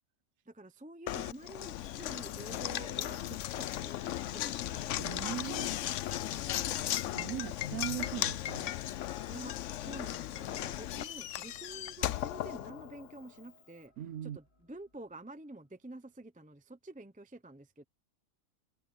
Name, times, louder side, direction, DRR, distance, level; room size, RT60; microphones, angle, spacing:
voice 1, 0.5-4.0 4.3-4.9 6.2-6.9 9.3-13.9 14.2-17.8, right 2 dB, 5° right, 0.7 m, -49 dB
Knock, 1.1-13.2, left 12 dB, 65° left, 0.8 m, -36 dB
voice 2, 5.0-5.8 7.1-8.7 14.0-14.4, right 12 dB, 70° right, 1.2 m, -40 dB
sound 1, 9.5-16.1, left 1 dB, 40° left, 3.0 m, -67 dB
omnidirectional pair, 1.6 m